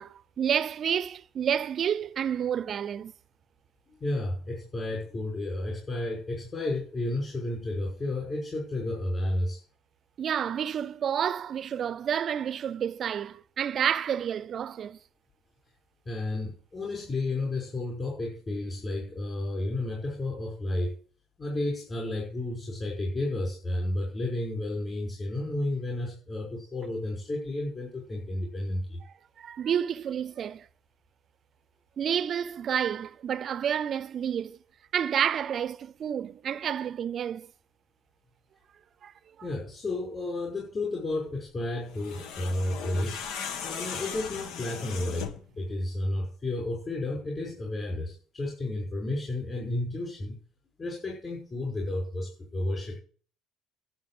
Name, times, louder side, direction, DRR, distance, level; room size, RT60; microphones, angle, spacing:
voice 1, 0.0-3.1 10.2-15.0 29.4-30.7 32.0-34.6 34.9-37.5 39.0-39.1, right 8 dB, 45° right, 0.7 m, -29 dB
voice 2, 4.0-9.6 16.1-21.0 21.4-29.0 39.4-43.2 43.6-45.3 45.6-50.4 50.8-53.0, left 2 dB, 25° left, 5.7 m, -32 dB
sound 1, 41.9-45.5, left 7 dB, 75° left, 1.8 m, -37 dB
11.0 x 7.4 x 7.8 m
cardioid pair, 110°, 0 cm